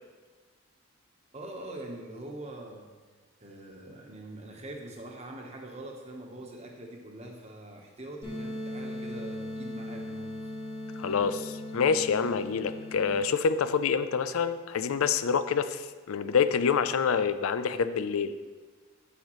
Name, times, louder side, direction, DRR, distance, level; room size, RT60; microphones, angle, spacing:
voice 1, 1.3-2.9 3.4-10.5, right 1 dB, 30° right, 1 dB, 1.1 m, -43 dB
sound 1, 8.2-13.2, left 1 dB, 25° left, 1.5 m, -38 dB
voice 2, 11.0-18.3, left 6 dB, 85° left, 12 dB, 0.4 m, -27 dB
8.5 x 8.0 x 3.1 m, 1.4 s
head